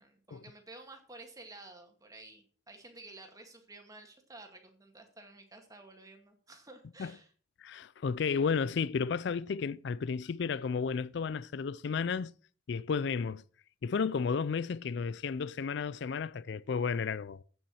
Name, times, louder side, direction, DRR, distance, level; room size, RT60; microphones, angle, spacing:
voice 1, 0.0-7.3, right 2 dB, 15° right, 1.9 m, -52 dB
voice 2, 7.6-12.3 12.7-13.4 13.8-17.4, left 5 dB, 60° left, 0.4 m, -32 dB
8.8 x 7.3 x 6.2 m
head